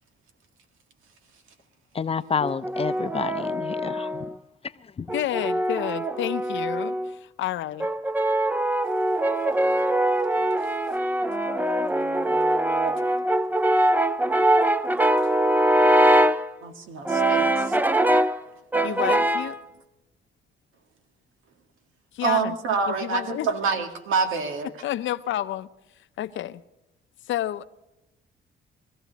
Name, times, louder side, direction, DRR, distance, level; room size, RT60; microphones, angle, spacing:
voice 1, 1.9-4.3 5.0-5.1, left 6 dB, 30° left, 0.6 m, -29 dB
Brass instrument, 2.4-4.3 5.1-7.1 7.8-16.5 17.1-18.4 18.7-19.6, right 1 dB, 10° right, 0.6 m, -22 dB
voice 2, 5.1-7.9 18.8-19.6 22.1-22.5 22.9-23.5 24.8-25.7 26.2-26.6 27.3-27.6, left 13 dB, 75° left, 0.7 m, -29 dB
voice 3, 16.6-17.8 22.2-24.7, right 5 dB, 85° right, 2.0 m, -27 dB
22.0 x 14.5 x 4.1 m
cardioid pair, 90°, 20 cm